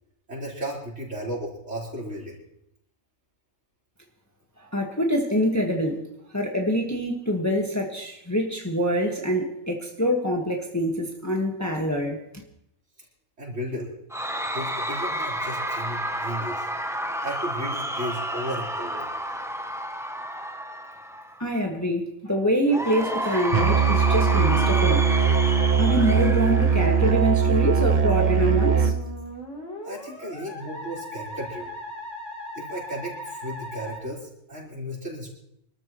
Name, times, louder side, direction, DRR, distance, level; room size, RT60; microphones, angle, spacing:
voice 1, 0.3-2.4 13.4-13.9 14.5-16.7 17.2-19.1 29.8-31.8 32.5-35.3, equal, 60° right, -4 dB, 4.8 m, -34 dB
voice 2, 4.6-6.0 6.3-12.2 21.4-25.1 25.8-28.9, equal, 10° left, 0 dB, 1.5 m, -25 dB
Cheering / Crowd, 14.1-21.4 22.7-27.4, equal, 5° right, 0.6 m, -31 dB
Musical instrument, 23.5-29.0, right 6 dB, 45° right, 0.7 m, -20 dB
Musical instrument 2, 28.8-34.0, equal, 60° left, 3.6 m, -38 dB
25.5 x 13.0 x 3.1 m, 0.77 s
omnidirectional pair, 1.4 m